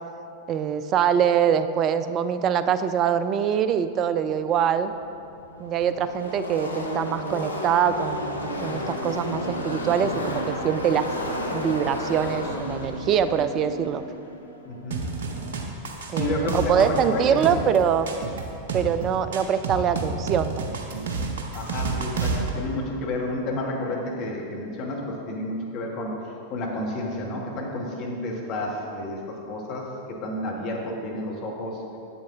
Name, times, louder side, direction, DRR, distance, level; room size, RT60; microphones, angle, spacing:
voice 1, 0.5-4.9 5.6-11.1 11.5-14.0 16.1-18.2 18.7-20.8, right 8 dB, 30° right, 12 dB, 0.3 m, -24 dB
Car passing by / Race car auto racing, 4.9-15.4, left 1 dB, 80° left, 0.8 m, -32 dB
voice 2, 14.6-15.1 16.1-17.6 21.5-31.8, left 1 dB, 40° left, -1 dB, 1.4 m, -30 dB
sound 1, 14.9-22.5, right 4 dB, 60° right, 0.8 m, -30 dB
7.6 x 7.1 x 3.7 m, 2.7 s
figure-of-eight pair, 90°, 0 cm